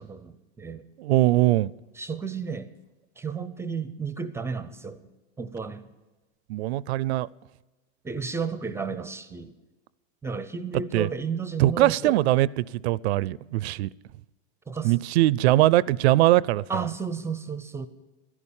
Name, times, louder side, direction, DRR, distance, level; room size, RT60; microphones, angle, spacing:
voice 1, 0.0-0.8 1.9-2.7 3.2-5.1 5.4-5.9 8.0-9.6 10.2-12.2 14.7-15.0 16.7-17.9, right 5 dB, 10° right, 0.5 m, -33 dB
voice 2, 1.0-1.7 6.5-7.3 10.9-11.1 11.6-13.9 14.8-16.6, right 16 dB, 75° right, 0.5 m, -21 dB
13.5 x 11.0 x 7.2 m
supercardioid pair, 145°, 33 cm